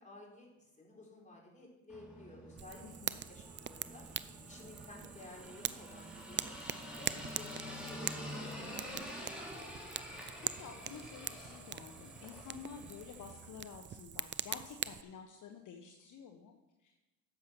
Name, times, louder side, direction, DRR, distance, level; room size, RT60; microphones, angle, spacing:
voice 1, 0.0-2.8 3.3-4.1 4.5-6.6 7.0-8.3 8.6-9.3, left 2 dB, 20° left, -3 dB, 4.4 m, -54 dB
sound 1, 1.9-13.5, equal, 5° right, 3.8 m, -48 dB
Fire, 2.6-15.0, right 8 dB, 30° right, 0.5 m, -43 dB
voice 2, 2.8-3.2 10.2-17.0, left 6 dB, 55° left, 4 dB, 1.1 m, -51 dB
10.5 x 7.4 x 6.1 m, 1.1 s
supercardioid pair, 70°, 37 cm